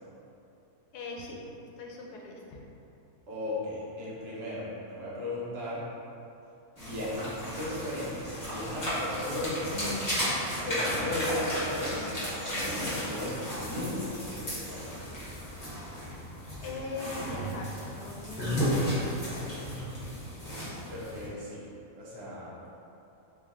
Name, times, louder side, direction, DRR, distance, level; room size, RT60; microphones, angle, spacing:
voice 1, 0.9-2.6 16.6-19.7, left 3 dB, 85° left, -1 dB, 1.2 m, -41 dB
voice 2, 3.3-5.9 6.8-10.1 10.6-12.1 12.4-14.9 20.9-21.6 22.0-22.6, left 1 dB, 60° right, -7 dB, 1.2 m, -36 dB
sound 1, 6.8-21.3, equal, 25° left, 1.1 m, -34 dB
3.2 x 3.1 x 3.6 m, 2.8 s
omnidirectional pair, 1.7 m